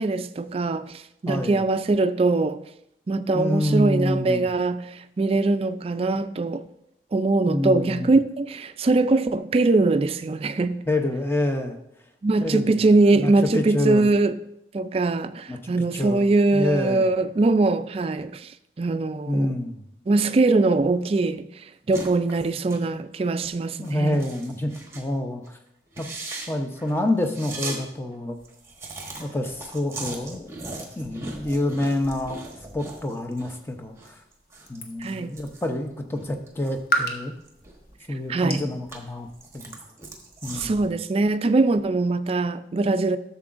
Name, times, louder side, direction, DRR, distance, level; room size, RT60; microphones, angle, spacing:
voice 1, 0.0-2.6 3.1-6.7 7.1-10.9 12.2-14.4 14.7-18.5 18.8-19.5 20.1-21.5 21.9-24.2 35.0-35.4 38.3-38.6 40.5-43.2, right 3 dB, 35° right, 0.3 m, -22 dB
voice 2, 1.3-1.6 3.3-4.4 7.4-8.1 10.9-11.8 12.4-12.8 13.2-14.1 15.5-16.2 16.5-17.1 19.3-19.9 23.8-25.6 26.0-26.1 26.5-28.4 29.2-30.5 31.0-32.4 32.7-34.1 34.7-37.3 38.1-39.3 39.5-39.7 40.4-40.8, left 1 dB, 15° left, 0.7 m, -27 dB
sound 1, 21.9-22.8 23.1-23.3 23.8-25.1 25.4-25.5 25.9-27.8 28.1-28.2 28.4-33.6 33.9-36.8 37.2-38.2 38.6-40.9, right 2 dB, 15° right, 1.0 m, -39 dB
sound 2, 33.3-39.6, equal, 55° left, 1.0 m, -35 dB
12.5 x 6.9 x 2.5 m
head